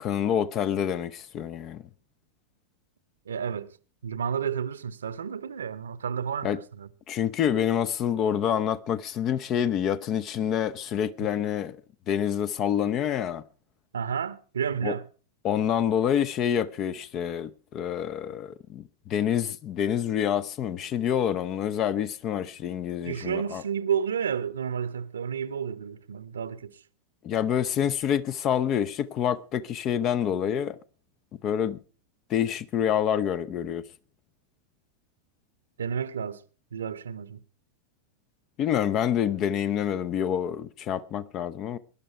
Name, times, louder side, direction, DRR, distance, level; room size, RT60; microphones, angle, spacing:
voice 1, 0.0-1.8 6.4-6.6 7.1-11.8 12.1-13.4 14.8-14.9 15.4-23.6 27.2-30.8 31.4-31.8 32.3-33.9 38.6-41.8, left 9 dB, 35° left, 0.7 m, -27 dB
voice 2, 3.3-3.7 4.0-6.9 13.9-15.0 23.0-26.8 35.8-36.4 36.7-37.4, right 7 dB, 70° right, 0.8 m, -31 dB
19.0 x 11.0 x 4.7 m
figure-of-eight pair, 90°, 0 cm